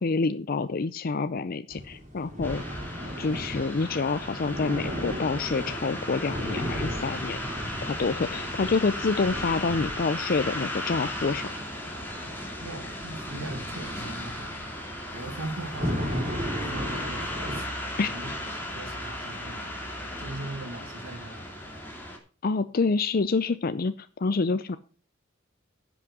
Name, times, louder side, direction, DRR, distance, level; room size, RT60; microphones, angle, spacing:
voice 1, 0.0-2.6 3.2-7.4 7.8-11.5 18.0-18.1 22.4-24.8, left 4 dB, 45° left, 12 dB, 0.5 m, -27 dB
sound 1, 1.7-17.6, equal, 35° right, 3.4 m, -36 dB
sound 2, 2.4-22.2, left 1 dB, 10° left, 2.5 m, -36 dB
voice 2, 12.6-14.6 15.1-16.4 16.7-17.7 18.0-18.3 18.7-19.7 20.2-21.5, right 2 dB, 80° right, 8 dB, 2.1 m, -40 dB
10.5 x 6.1 x 6.7 m, 0.38 s
head